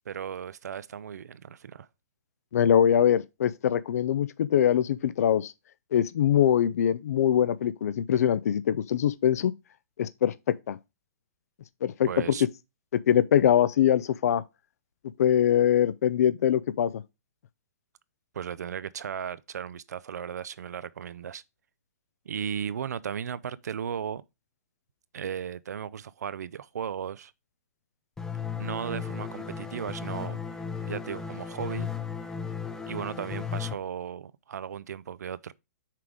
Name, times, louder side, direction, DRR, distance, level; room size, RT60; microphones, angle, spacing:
voice 1, 0.1-1.9 12.1-12.5 18.3-21.4 22.3-24.2 25.1-27.3 28.6-31.9 32.9-35.5, right 8 dB, 85° right, 0.5 m, -36 dB
voice 2, 2.5-5.5 5.9-9.5 10.0-10.8 11.8-12.1 12.9-14.4 15.2-17.0, left 9 dB, 65° left, 0.4 m, -23 dB
sound 1, 28.2-33.7, left 6 dB, 5° left, 0.5 m, -35 dB
5.8 x 3.6 x 4.7 m
hypercardioid pair, 150°, 9 cm